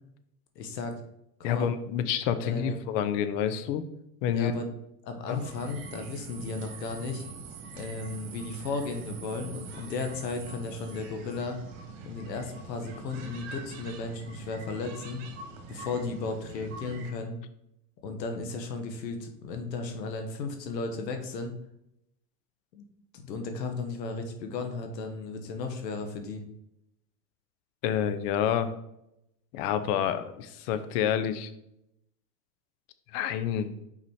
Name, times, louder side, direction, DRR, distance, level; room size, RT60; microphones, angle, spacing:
voice 1, 0.5-0.9 1.4-1.7 2.4-3.0 4.3-4.7 5.0-7.2 7.8-11.6 12.0-15.2 15.7-17.4 18.0-21.5 22.7-22.8 23.1-26.4, left 3 dB, 80° left, 5 dB, 1.3 m, -35 dB
voice 2, 1.4-3.8 4.2-4.5 5.3-5.4 27.8-28.7 29.5-31.5 33.1-33.7, left 9 dB, 50° left, 11 dB, 0.9 m, -28 dB
sound 1, 5.3-17.1, right 4 dB, 60° right, 1.7 m, -44 dB
5.8 x 4.9 x 4.7 m, 0.80 s
hypercardioid pair, 110°, 49 cm